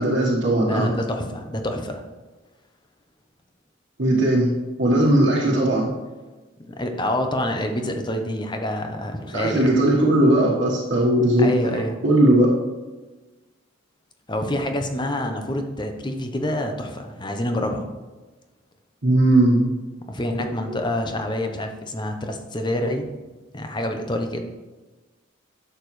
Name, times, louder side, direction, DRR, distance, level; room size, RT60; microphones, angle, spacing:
voice 1, 0.0-0.9 4.0-4.5 4.8-5.9 9.3-12.5 19.0-19.7, right 1 dB, 60° right, -5 dB, 1.4 m, -18 dB
voice 2, 0.7-2.0 6.7-9.7 11.4-12.0 14.3-17.8 20.1-23.1 23.5-24.4, left 1 dB, 20° left, 5 dB, 0.8 m, -27 dB
11.0 x 6.8 x 3.2 m, 1.2 s
head